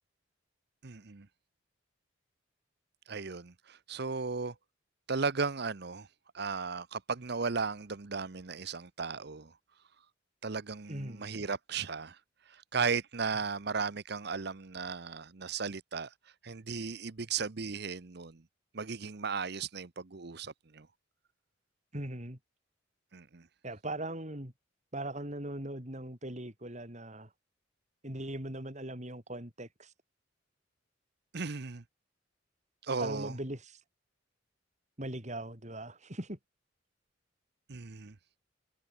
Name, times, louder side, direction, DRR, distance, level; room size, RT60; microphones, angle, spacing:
voice 1, 0.8-1.3 3.1-4.5 5.1-6.1 6.3-9.5 10.4-12.2 12.5-16.1 16.4-18.4 18.7-20.9 23.1-23.4 31.3-31.8 32.8-33.3 37.7-38.1, right 5 dB, 60° right, 0.9 m, -36 dB
voice 2, 10.9-11.3 21.9-22.4 23.6-24.5 24.9-27.3 28.0-29.9 33.0-33.8 35.0-36.4, right 1 dB, 40° right, 5.3 m, -40 dB
head